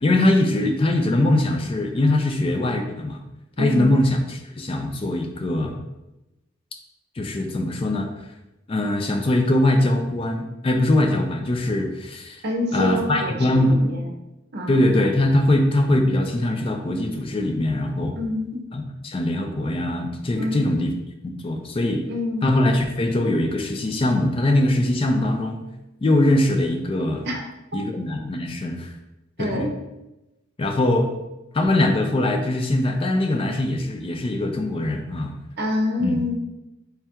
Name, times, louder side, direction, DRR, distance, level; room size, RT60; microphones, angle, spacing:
voice 1, 0.0-3.2 3.6-5.8 7.2-8.1 8.7-12.4 12.7-13.8 14.7-18.2 18.7-20.9 21.2-22.0 22.4-25.6 26.0-27.2 27.7-28.9 29.4-29.7 30.6-31.1 31.5-35.3 36.0-36.2, left 1 dB, 30° left, 4 dB, 0.3 m, -22 dB
voice 2, 3.6-3.9 12.4-14.1 14.5-14.9 18.1-18.7 20.3-20.8 22.1-22.5 27.3-27.4 27.7-27.8 29.4-29.7 35.6-36.4, left 1 dB, 55° right, 1 dB, 0.7 m, -26 dB
3.4 x 2.3 x 4.3 m, 0.95 s
head